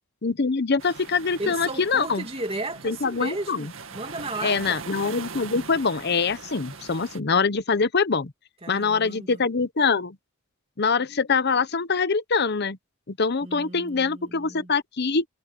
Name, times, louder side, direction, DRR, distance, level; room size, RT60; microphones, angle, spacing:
voice 1, 0.2-2.2 2.8-3.7 4.4-8.3 8.7-10.2 10.8-12.8 13.1-15.2, left 5 dB, 55° left, 0.9 m, -24 dB
sound 1, 0.8-7.2, right 5 dB, 75° right, 2.1 m, -41 dB
voice 2, 1.4-4.8 8.6-9.4 13.4-14.7, right 2 dB, 30° right, 2.6 m, -35 dB
head